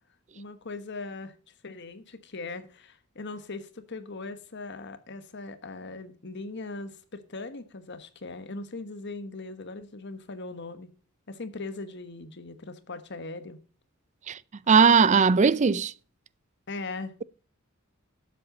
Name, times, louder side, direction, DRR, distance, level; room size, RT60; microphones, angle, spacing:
voice 1, 0.3-1.3 1.6-10.9 11.3-13.6 16.7-17.1, left 3 dB, 55° left, 1.3 m, -39 dB
voice 2, 14.7-15.9, right 5 dB, 35° right, 0.4 m, -19 dB
12.0 x 7.9 x 3.9 m
head